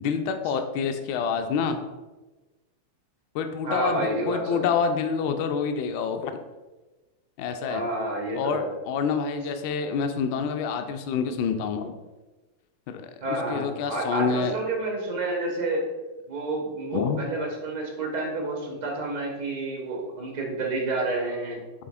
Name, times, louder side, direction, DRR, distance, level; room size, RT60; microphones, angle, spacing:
voice 1, 0.0-1.8 3.3-6.3 7.4-7.8 8.3-12.0 12.9-14.6 16.9-17.3, left 6 dB, 45° left, 7 dB, 0.3 m, -27 dB
voice 2, 3.6-4.7 7.6-8.7 13.2-15.8 16.3-21.6, right 2 dB, 50° right, -1 dB, 1.1 m, -29 dB
4.3 x 3.3 x 2.4 m, 1.2 s
figure-of-eight pair, 90°, 0 cm